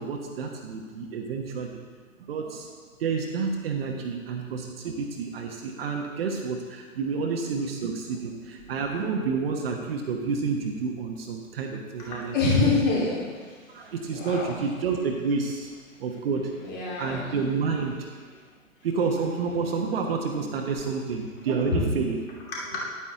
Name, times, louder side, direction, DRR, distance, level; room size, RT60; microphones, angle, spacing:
voice 1, 0.0-1.8 2.2-2.7 3.0-12.3 12.6-12.7 13.7-15.7 16.0-16.7 17.0-18.1 18.8-22.2, right 5 dB, 45° right, 2 dB, 1.1 m, -29 dB
voice 2, 12.0-14.5 16.6-17.3 21.7-21.8 22.5-22.8, left 3 dB, 25° left, -5 dB, 2.7 m, -27 dB
9.9 x 9.0 x 3.7 m, 1.5 s
figure-of-eight pair, 125°, 41 cm